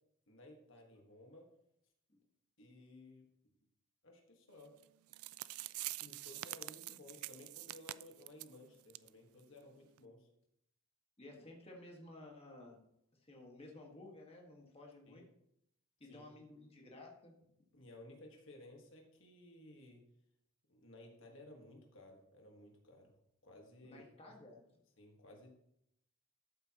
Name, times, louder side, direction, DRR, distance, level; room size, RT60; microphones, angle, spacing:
voice 1, 0.3-1.5 2.6-3.3 4.0-4.8 6.0-10.3 15.1-15.2 16.0-16.3 17.7-20.0 20.7-23.1 23.4-24.3 25.0-25.6, left 1 dB, 60° left, 2 dB, 1.6 m, -57 dB
sound 1, 4.8-4.9 5.1-8.5 8.9-9.1 9.4-9.5 10.0-10.1, right 17 dB, 85° right, 0.3 m, -45 dB
voice 2, 11.2-12.8 13.1-15.3 16.0-17.5 23.8-24.6, left 2 dB, 30° left, -1 dB, 1.7 m, -55 dB
13.0 x 8.1 x 3.0 m, 0.76 s
head